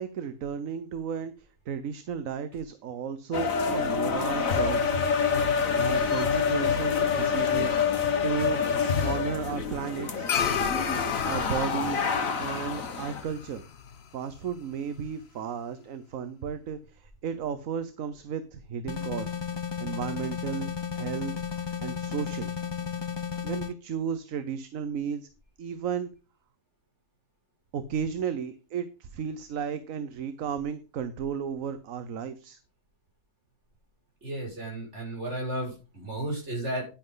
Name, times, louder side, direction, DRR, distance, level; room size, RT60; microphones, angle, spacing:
voice 1, 0.0-5.0 5.7-8.6 9.0-10.3 11.2-12.0 12.4-13.6 14.1-19.3 19.8-21.3 21.8-22.6 23.4-25.3 25.6-26.1 27.7-32.6, right 7 dB, 70° right, 12 dB, 1.3 m, -34 dB
sound 1, 3.3-13.2, left 6 dB, 70° left, 1.7 m, -27 dB
sound 2, 10.3-14.9, left 8 dB, 50° left, 1.0 m, -33 dB
sound 3, 18.9-23.7, left 7 dB, 30° left, 0.5 m, -33 dB
voice 2, 34.2-36.9, right 1 dB, 50° right, -2 dB, 6.2 m, -33 dB
10.5 x 10.0 x 3.9 m, 0.32 s
omnidirectional pair, 1.5 m